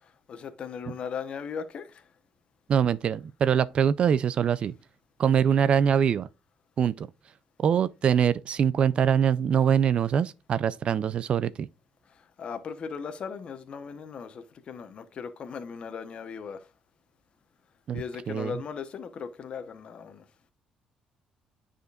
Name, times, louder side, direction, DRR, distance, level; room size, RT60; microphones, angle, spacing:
voice 1, 0.3-2.0 12.4-16.7 17.9-20.2, left 6 dB, 45° left, 1.0 m, -38 dB
voice 2, 2.7-4.7 5.2-6.3 6.8-7.1 7.6-11.7 17.9-18.6, right 8 dB, 45° right, 0.4 m, -24 dB
9.3 x 5.1 x 2.4 m
cardioid pair, 125°, 2 cm